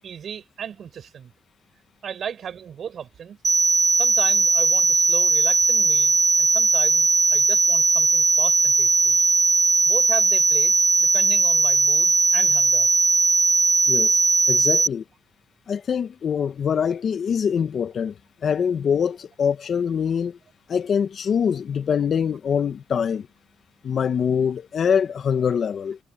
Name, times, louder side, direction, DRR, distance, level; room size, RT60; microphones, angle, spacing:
voice 1, 0.0-1.3 2.0-3.4 4.0-9.3 9.8-12.9, right 8 dB, 55° right, 7.3 m, -36 dB
sound 1, 3.4-14.9, right 3 dB, 25° right, 0.4 m, -18 dB
voice 2, 13.9-14.2 14.5-15.0 15.7-20.4 20.7-23.3 23.8-26.0, left 7 dB, 55° left, 1.6 m, -24 dB
cardioid pair, 90°, 0 cm